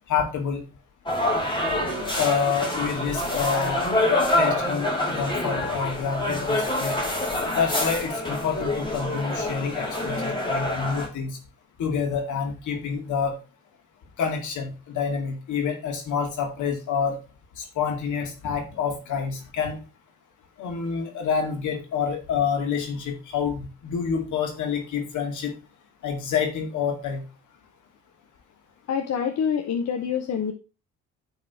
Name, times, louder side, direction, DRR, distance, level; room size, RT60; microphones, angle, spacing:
voice 1, 0.1-0.6 2.2-3.8 4.4-7.0 7.5-11.3 11.8-13.4 14.2-17.2 17.6-19.8 20.6-25.5 26.0-27.2, left 6 dB, 75° left, 4 dB, 2.2 m, -27 dB
sound 1, 1.1-11.1, left 1 dB, 15° left, 2.4 m, -26 dB
voice 2, 28.9-30.5, left 7 dB, 60° left, 5 dB, 1.0 m, -26 dB
9.7 x 4.0 x 4.2 m, 0.32 s
cardioid pair, 90°, 30 cm